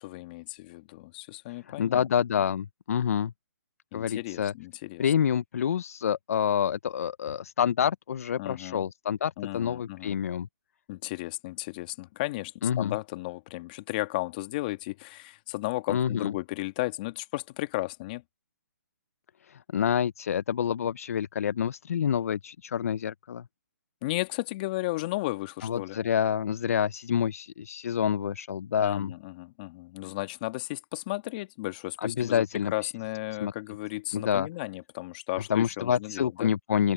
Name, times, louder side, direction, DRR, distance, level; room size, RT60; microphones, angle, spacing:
voice 1, 0.0-2.1 3.9-5.0 8.4-8.8 9.4-10.2 10.9-18.2 24.0-26.0 28.8-36.5, left 20 dB, 30° left, 1.9 m, -34 dB
voice 2, 1.6-3.3 3.9-4.5 5.0-10.5 12.6-12.9 15.9-16.3 19.5-23.4 25.6-29.1 32.0-32.9 33.4-33.5 34.1-34.5 35.5-36.9, left 8 dB, 50° left, 0.7 m, -27 dB
open air
hypercardioid pair, 155°, 10 cm